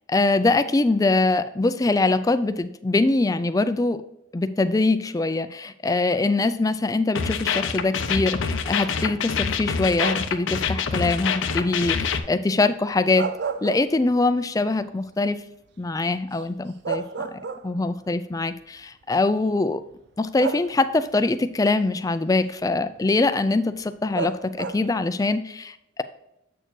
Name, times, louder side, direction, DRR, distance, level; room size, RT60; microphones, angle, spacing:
voice 1, 0.1-4.0 4.3-13.3 13.6-15.4 15.8-17.0 17.3-19.8 20.2-26.0, left 2 dB, 20° left, 11 dB, 0.3 m, -23 dB
sound 1, 7.1-12.2, left 6 dB, 75° left, 0.6 m, -26 dB
sound 2, 10.0-10.5 12.9-14.3 14.7-14.8 16.4-16.5 16.8-18.0 19.0-19.1 20.4-21.1 24.1-25.0, right 5 dB, 55° right, 0.4 m, -31 dB
7.8 x 6.5 x 3.1 m, 0.83 s
head